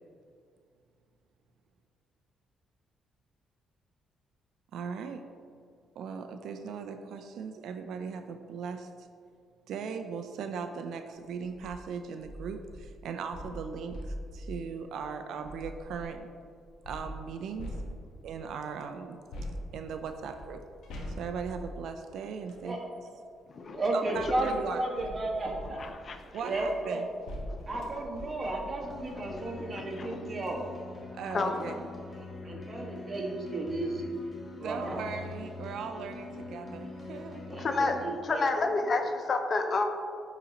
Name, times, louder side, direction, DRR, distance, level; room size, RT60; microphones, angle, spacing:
voice 1, 4.7-5.2 6.0-9.1 9.7-16.3 16.9-17.8 18.2-19.2 19.7-20.6 21.1-23.1 23.9-25.0 26.3-27.1 31.1-31.8 34.6-37.7, right 6 dB, 75° right, 7 dB, 0.4 m, -38 dB
sound 1, 11.4-11.7 12.2-16.2 16.9-18.4 19.3-22.7 23.6-29.5 30.0-30.1 30.4-30.5, equal, 80° left, 1.1 m, -43 dB
voice 2, 23.7-25.8 26.4-27.0 27.7-30.6 31.5-31.7 32.2-34.0 34.6-35.1 37.5-38.5, right 2 dB, 35° right, -1 dB, 1.4 m, -33 dB
voice 3, 25.8-26.2 27.7-28.5 29.2-29.4 29.9-30.2 31.3-31.8 37.5-39.8, left 3 dB, 45° left, 6 dB, 0.6 m, -30 dB
sound 2, 28.8-38.1, left 3 dB, 25° left, 0.9 m, -43 dB
10.5 x 4.0 x 2.9 m, 2.2 s
cardioid pair, 90°, 0 cm